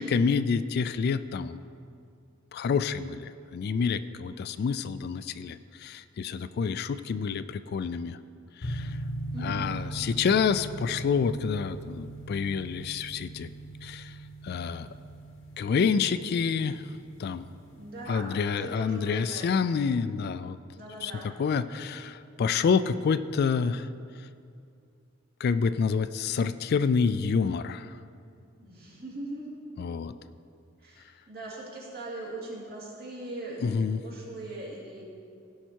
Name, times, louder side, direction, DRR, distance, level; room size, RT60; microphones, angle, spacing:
voice 1, 0.0-1.6 2.5-8.2 8.6-9.0 9.4-13.5 13.8-14.2 14.4-14.9 15.6-17.5 18.1-20.6 21.0-23.9 25.4-28.0 29.8-30.1 33.6-34.0, left 5 dB, 50° left, 13 dB, 0.3 m, -28 dB
sound 1, 8.6-19.4, right 2 dB, 75° left, 0.9 m, -40 dB
voice 2, 9.3-9.7 17.7-18.3 18.6-19.5 20.8-21.3 28.6-29.6 30.8-35.0, right 2 dB, 50° right, -5 dB, 2.6 m, -40 dB
16.5 x 5.6 x 4.5 m, 2.4 s
head